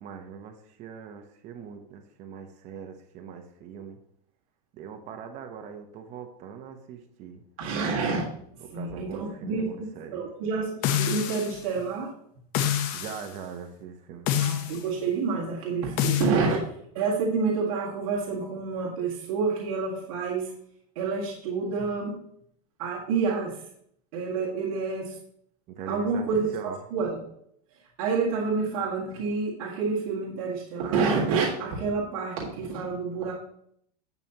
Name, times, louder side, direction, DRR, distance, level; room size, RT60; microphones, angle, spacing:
voice 1, 0.0-4.0 4.7-7.4 8.6-10.2 12.9-14.3 25.7-26.3 26.5-26.8, right 7 dB, 35° right, 6 dB, 0.9 m, -41 dB
voice 2, 7.6-8.2 8.7-9.7 10.1-10.7 11.0-12.1 14.4-16.6 16.9-20.5 21.0-22.2 22.8-23.6 24.1-25.2 25.9-27.2 28.0-33.3, right 4 dB, 60° right, -4 dB, 1.9 m, -28 dB
sound 1, 10.8-11.6 12.5-13.3 14.3-14.8 16.0-16.3, left 10 dB, 45° left, 0.9 m, -26 dB
11.0 x 6.9 x 3.0 m, 0.71 s
supercardioid pair, 150°, 21 cm